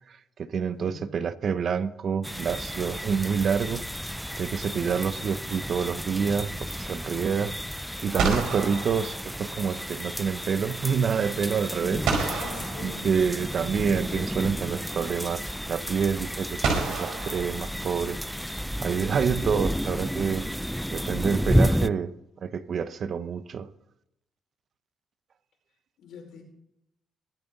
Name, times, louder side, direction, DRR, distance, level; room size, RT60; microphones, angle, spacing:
voice 1, 0.1-12.1 12.8-18.2 18.8-22.1 22.4-23.7, right 6 dB, 55° right, 0.9 m, -28 dB
voice 2, 0.7-1.2 4.7-5.0 12.3-13.2 26.0-26.4, left 4 dB, 80° left, 5.1 m, -43 dB
sound 1, 2.2-21.9, equal, ahead, 0.4 m, -31 dB
sound 2, 2.7-3.6 7.6-7.7 8.2-9.9 12.1-13.6 15.0-15.1 16.6-18.3, right 4 dB, 85° right, 4.4 m, -31 dB
22.5 x 8.8 x 4.1 m
cardioid pair, 90°, 0 cm